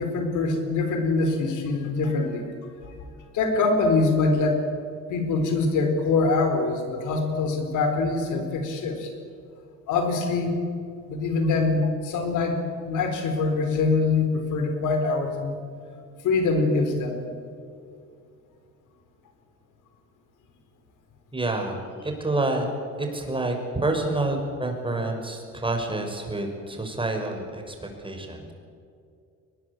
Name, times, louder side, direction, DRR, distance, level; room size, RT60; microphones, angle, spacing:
voice 1, 0.0-2.5 2.8-2.9 3.3-4.6 5.1-9.1 9.9-10.6 11.1-15.6 16.2-17.3, left 3 dB, 85° left, 5 dB, 4.6 m, -24 dB
voice 2, 21.3-22.7 23.0-23.6 23.8-28.5, right 2 dB, 15° right, 3 dB, 5.9 m, -28 dB
22.5 x 20.0 x 8.6 m, 2.4 s
cardioid pair, 90°, 30 cm